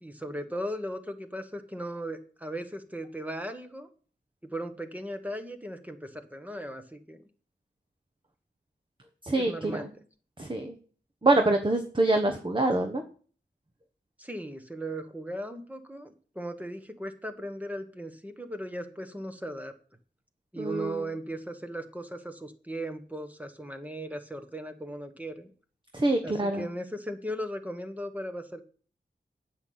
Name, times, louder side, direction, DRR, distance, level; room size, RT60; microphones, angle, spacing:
voice 1, 0.0-3.9 4.4-7.2 9.3-9.9 14.2-19.7 20.5-25.5 26.2-28.6, equal, 10° right, 7 dB, 1.4 m, -37 dB
voice 2, 9.2-9.9 10.4-10.7 11.2-13.0 20.6-21.0 25.9-26.7, right 2 dB, 25° right, 5 dB, 1.2 m, -25 dB
9.6 x 6.5 x 8.7 m, 0.43 s
wide cardioid pair, 85°, 19 cm